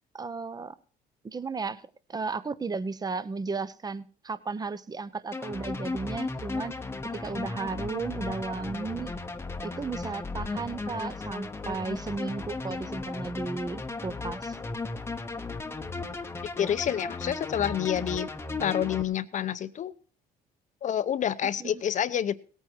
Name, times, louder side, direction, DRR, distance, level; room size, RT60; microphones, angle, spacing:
voice 1, 0.1-0.8 1.2-1.8 2.1-6.7 7.1-9.1 9.6-14.6 21.6-21.8, right 4 dB, 25° right, 16 dB, 0.9 m, -34 dB
sound 1, 5.3-19.0, left 3 dB, 15° left, 1.0 m, -35 dB
voice 2, 16.6-18.3 18.6-19.9 20.8-22.3, left 10 dB, 45° left, 14 dB, 0.8 m, -28 dB
17.5 x 9.0 x 4.6 m, 0.39 s
cardioid pair, 110°, 17 cm